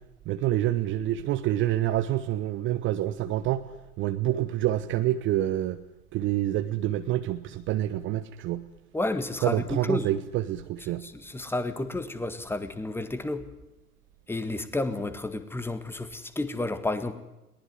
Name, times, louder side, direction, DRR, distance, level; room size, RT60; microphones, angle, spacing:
voice 1, 0.3-3.6 4.0-5.8 6.1-8.6 9.4-11.0, right 13 dB, 25° right, 11 dB, 1.0 m, -27 dB
voice 2, 8.9-10.1 11.0-13.4 14.3-17.1, left 2 dB, 5° left, 12 dB, 1.7 m, -31 dB
22.0 x 19.0 x 9.7 m, 0.91 s
figure-of-eight pair, 105°, 46 cm